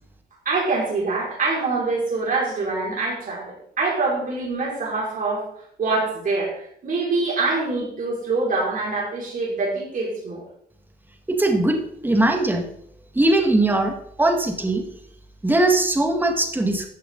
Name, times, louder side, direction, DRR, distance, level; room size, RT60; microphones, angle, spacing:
voice 1, 0.5-5.4 5.8-10.4, right 3 dB, 55° right, -4 dB, 5.6 m, -25 dB
voice 2, 11.3-12.7 13.1-14.8 15.4-16.9, right 2 dB, 10° right, 3 dB, 1.8 m, -20 dB
14.0 x 7.9 x 4.0 m, 0.69 s
cardioid pair, 115°, 17 cm